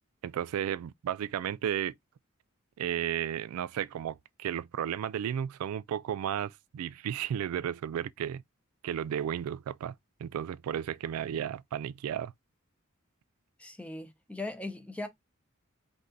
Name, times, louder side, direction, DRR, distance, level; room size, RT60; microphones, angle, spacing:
voice 1, 0.2-1.9 2.8-8.4 8.8-9.9 10.2-12.3, right 9 dB, 85° right, 0.3 m, -33 dB
voice 2, 13.6-15.1, left 2 dB, 5° left, 0.7 m, -39 dB
5.3 x 2.6 x 3.7 m
head